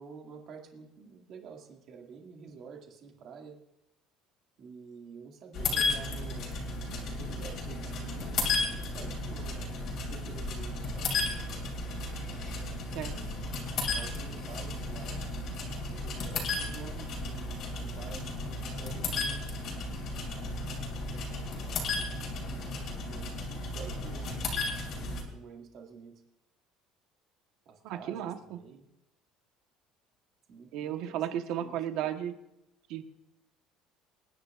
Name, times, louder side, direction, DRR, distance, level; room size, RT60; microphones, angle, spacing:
voice 1, 0.0-3.6 4.6-6.6 6.9-9.7 10.1-11.6 13.0-13.5 13.9-15.4 15.9-20.0 21.1-21.9 22.5-23.3 23.6-24.5 24.9-26.2 27.7-28.9 30.5-32.1, right 5 dB, 40° right, 1 dB, 2.2 m, -49 dB
sound 1, 5.5-25.2, left 3 dB, 45° left, 2.9 m, -34 dB
voice 2, 27.8-28.6 30.7-32.3 32.9-33.0, right 10 dB, 60° right, 7 dB, 1.2 m, -34 dB
26.5 x 10.5 x 2.5 m, 0.86 s
cardioid pair, 175°, 0 cm